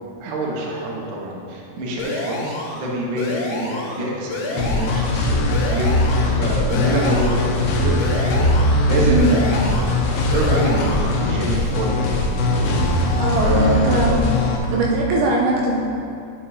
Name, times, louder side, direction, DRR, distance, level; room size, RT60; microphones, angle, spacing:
voice 1, 0.2-8.5 8.9-13.0 13.4-14.2, right 1 dB, 65° right, -3 dB, 2.2 m, -26 dB
sound 1, 2.0-2.8 3.2-4.0 4.3-5.2 5.5-6.4 6.7-7.5 8.0-8.8 9.2-10.0 10.3-11.2, left 2 dB, 65° left, 2.5 m, -29 dB
sound 2, 4.6-14.6, left 2 dB, 90° left, 3.0 m, -20 dB
voice 2, 9.1-9.4 10.2-10.3 13.2-14.2 14.7-15.8, right 2 dB, 80° right, -3 dB, 2.6 m, -20 dB
9.1 x 7.6 x 2.8 m, 2.4 s
omnidirectional pair, 4.9 m